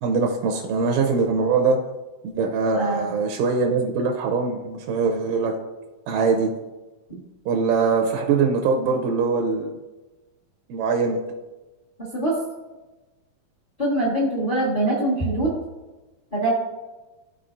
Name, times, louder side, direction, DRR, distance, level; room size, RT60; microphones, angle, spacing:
voice 1, 0.0-1.8 2.3-5.5 6.1-6.5 7.5-9.7 10.7-11.2, right 4 dB, 90° right, 2 dB, 2.1 m, -22 dB
voice 2, 2.7-3.1 7.1-7.2 12.1-12.3 13.8-15.5 16.3-16.5, right 2 dB, 35° left, -5 dB, 0.8 m, -23 dB
12.5 x 4.3 x 2.5 m, 1.1 s
omnidirectional pair, 3.3 m